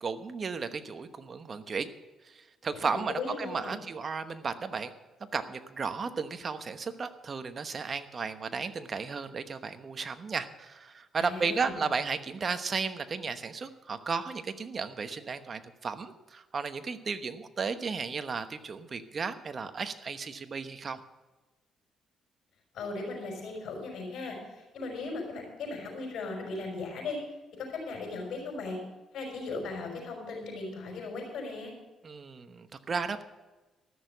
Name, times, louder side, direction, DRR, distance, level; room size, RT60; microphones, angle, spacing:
voice 1, 0.0-1.9 2.2-4.9 5.3-21.0 32.0-33.2, right 5 dB, 40° right, 10 dB, 1.0 m, -34 dB
voice 2, 2.7-3.7 11.2-11.8 22.7-27.2 27.6-28.8 29.1-31.7, left 3 dB, 75° left, 1 dB, 5.3 m, -37 dB
14.0 x 6.6 x 8.1 m, 1.1 s
cardioid pair, 90°, 0 cm